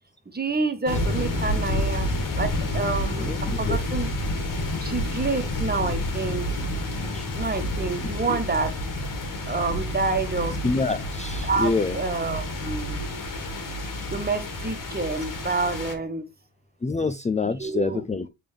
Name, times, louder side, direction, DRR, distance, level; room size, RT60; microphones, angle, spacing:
voice 1, 0.3-2.1 2.4-3.3 3.6-4.1 4.8-6.4 7.3-8.8 9.5-10.5 11.4-13.0 14.1-16.2 17.4-18.0, right 3 dB, 25° right, 1.5 m, -28 dB
sound 1, 0.9-15.9, left 1 dB, 60° left, 2.3 m, -29 dB
voice 2, 3.2-3.8 7.1-7.2 8.3-8.4 10.6-12.0 16.8-18.3, left 3 dB, 20° left, 0.6 m, -26 dB
8.5 x 3.7 x 3.4 m
cardioid pair, 75°, 36 cm